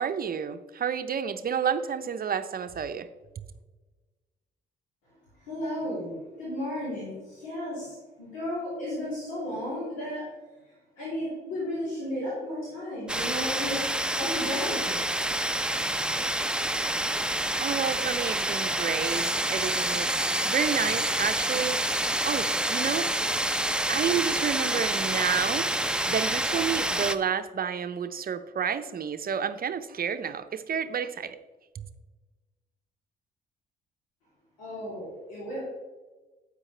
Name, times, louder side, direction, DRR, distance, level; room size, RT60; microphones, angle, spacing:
voice 1, 0.0-3.1 17.6-23.1 23.9-25.7 26.1-31.4 31.7-31.8, right 7 dB, 45° right, 0.7 m, -30 dB
voice 2, 5.5-10.2 11.0-13.8 14.0-15.0 34.6-35.6, left 1 dB, 85° left, 3.2 m, -34 dB
sound 1, 13.1-27.2, right 1 dB, 5° right, 0.6 m, -28 dB
9.8 x 8.2 x 3.3 m
hypercardioid pair, 50°, 21 cm